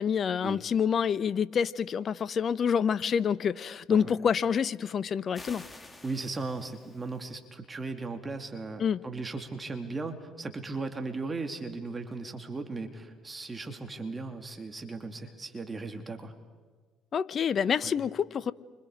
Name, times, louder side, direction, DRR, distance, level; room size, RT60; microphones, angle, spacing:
voice 1, 0.0-5.6 8.8-9.0 17.1-18.5, left 7 dB, 50° left, 17 dB, 0.9 m, -27 dB
sound 1, 5.3-7.4, left 2 dB, 20° left, 2.5 m, -49 dB
voice 2, 6.0-16.3 17.8-17.9, right 3 dB, 25° right, 5 dB, 3.0 m, -37 dB
30.0 x 26.0 x 5.1 m, 1.5 s
hypercardioid pair, 60°, 0 cm